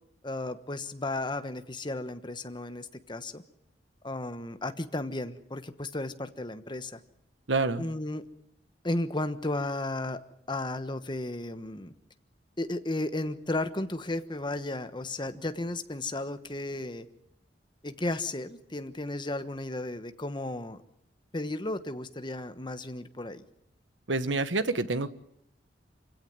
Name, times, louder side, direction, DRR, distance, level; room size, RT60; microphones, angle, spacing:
voice 1, 0.2-3.4 4.0-7.0 7.8-8.2 8.8-10.2 10.5-11.9 12.6-17.1 17.8-20.8 21.3-23.4, left 2 dB, 25° left, 10 dB, 1.2 m, -34 dB
voice 2, 7.5-7.8 24.1-25.1, right 3 dB, 85° right, 12 dB, 1.3 m, -27 dB
26.0 x 16.5 x 9.5 m, 0.79 s
head